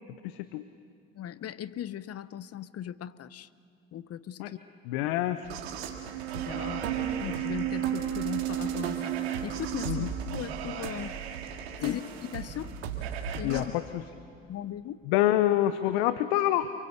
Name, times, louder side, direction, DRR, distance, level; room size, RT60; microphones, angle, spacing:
voice 1, 0.2-0.6 4.4-4.5 4.9-5.5 9.9-10.1 11.8-12.0 13.4-13.6 15.1-16.7, left 13 dB, 80° left, 12 dB, 0.9 m, -26 dB
voice 2, 1.1-3.5 3.9-4.6 6.3-6.8 7.2-9.1 9.4-10.0 10.3-11.1 11.8-12.7 13.4-13.7 14.4-15.0, left 10 dB, 50° left, 16 dB, 1.0 m, -38 dB
sound 1, 5.4-13.6, right 9 dB, 90° right, 2.3 m, -33 dB
28.5 x 24.5 x 8.1 m, 2.4 s
hypercardioid pair, 65°, 31 cm